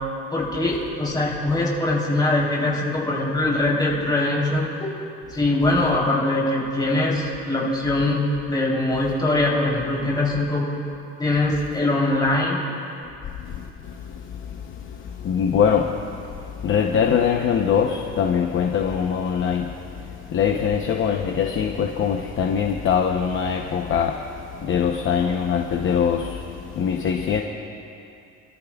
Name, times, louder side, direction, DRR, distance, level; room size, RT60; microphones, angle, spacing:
voice 1, 0.3-4.9 5.3-10.8 11.2-12.7, left 2 dB, 15° left, -4 dB, 3.4 m, -22 dB
voice 2, 15.2-15.9 16.6-19.6 20.3-24.1 24.7-26.4 26.8-27.4, left 7 dB, 45° left, 2 dB, 0.8 m, -22 dB
29.5 x 13.5 x 2.4 m, 2.6 s
cardioid pair, 150°, 29 cm